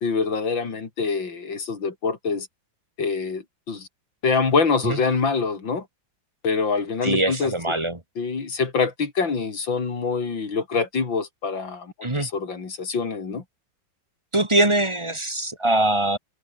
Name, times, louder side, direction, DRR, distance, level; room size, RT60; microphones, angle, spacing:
voice 1, 0.0-2.5 3.0-3.9 4.2-5.9 6.4-7.8 8.2-11.9 12.2-13.4, left 4 dB, 75° left, 3.9 m, -25 dB
voice 2, 7.0-8.0 12.0-12.3 14.3-16.2, right 1 dB, 15° right, 2.2 m, -22 dB
omnidirectional pair, 2.1 m